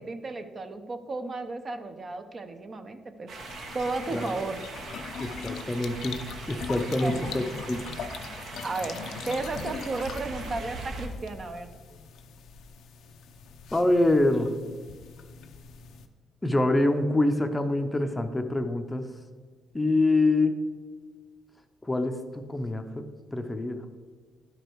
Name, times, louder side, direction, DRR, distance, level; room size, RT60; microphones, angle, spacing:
voice 1, 0.0-3.3 3.7-4.6 7.0-7.2 8.6-9.0 9.3-11.7, right 3 dB, 40° right, 7 dB, 0.7 m, -33 dB
sound 1, 3.3-11.1, right 3 dB, 65° right, 1.1 m, -40 dB
sound 2, 3.4-16.1, left 6 dB, 75° left, 0.6 m, -42 dB
voice 2, 5.2-6.2 6.5-7.8 13.7-14.6 16.4-19.1 19.7-20.6 21.8-23.8, left 2 dB, 15° left, 7 dB, 0.6 m, -25 dB
11.0 x 5.0 x 4.6 m, 1.5 s
cardioid pair, 90°, 0 cm